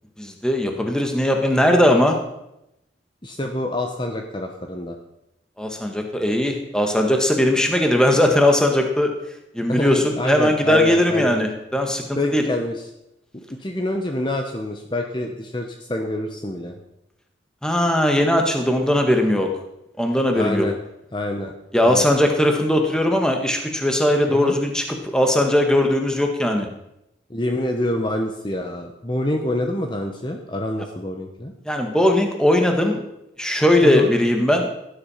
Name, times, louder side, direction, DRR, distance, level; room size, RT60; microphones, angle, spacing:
voice 1, 0.2-2.2 5.6-9.1 9.5-12.4 17.6-19.5 20.0-20.6 21.7-26.7 31.6-33.0 33.4-34.7, left 1 dB, 5° left, 3 dB, 1.7 m, -19 dB
voice 2, 3.2-4.9 9.7-11.5 12.2-12.8 13.5-16.8 20.3-20.8 21.1-21.5 21.8-22.1 24.3-24.6 27.3-31.5 33.8-34.1, left 1 dB, 25° left, 4 dB, 1.1 m, -26 dB
17.5 x 10.5 x 5.7 m, 0.86 s
head